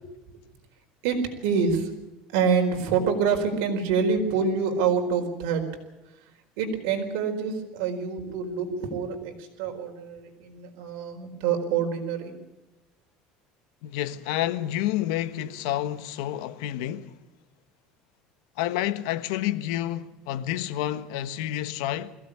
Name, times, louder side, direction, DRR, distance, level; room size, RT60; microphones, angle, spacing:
voice 1, 1.0-1.9 2.3-5.7 6.6-12.4, right 6 dB, 75° right, 4.5 m, -26 dB
voice 2, 13.8-17.1 18.6-22.2, left 13 dB, 85° left, 1.3 m, -29 dB
22.0 x 16.5 x 8.6 m
cardioid pair, 165°, 3 cm